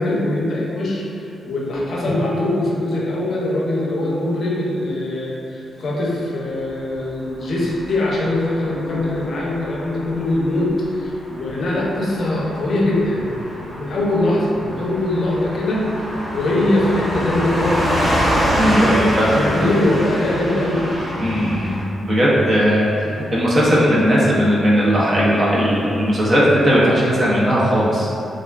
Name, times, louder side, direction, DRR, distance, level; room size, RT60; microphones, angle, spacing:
voice 1, 0.0-13.3 13.6-15.9 16.3-18.3 19.2-20.9, left 1 dB, 55° left, -4 dB, 0.5 m, -22 dB
Car passing by / Truck, 7.5-21.8, equal, 5° left, 1.1 m, -26 dB
voice 2, 18.6-19.4 21.2-21.8 22.0-28.2, equal, 35° right, -7 dB, 0.6 m, -17 dB
3.3 x 2.4 x 2.2 m, 2.6 s
wide cardioid pair, 145°, 0 cm